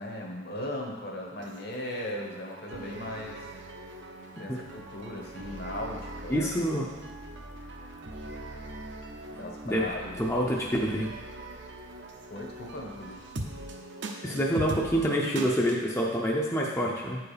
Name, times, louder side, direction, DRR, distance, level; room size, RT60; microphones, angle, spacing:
voice 1, 0.0-3.4 4.4-6.5 9.4-10.6 12.3-13.2, left 1 dB, 55° left, 0 dB, 1.4 m, -38 dB
sound 1, 1.4-15.9, right 1 dB, 65° right, 0.8 m, -41 dB
voice 2, 6.3-6.9 9.6-9.8 10.2-11.1 14.2-17.2, equal, 15° left, -3 dB, 0.6 m, -27 dB
8.6 x 4.7 x 5.0 m, 1.2 s
head